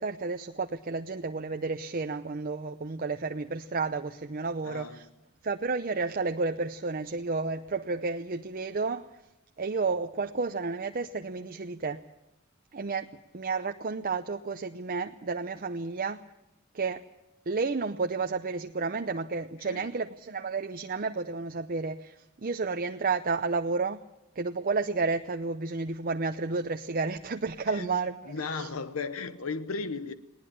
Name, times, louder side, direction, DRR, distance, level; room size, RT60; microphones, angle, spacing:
voice 1, 0.0-5.1 5.4-9.2 9.6-12.0 12.7-13.1 13.3-16.2 16.7-17.0 17.5-24.0 24.3-28.7, right 4 dB, 45° right, 0.7 m, -31 dB
voice 2, 4.6-5.1 19.6-19.9 27.7-28.0 28.3-30.1, left 4 dB, 90° left, 1.0 m, -35 dB
19.5 x 19.5 x 8.7 m
head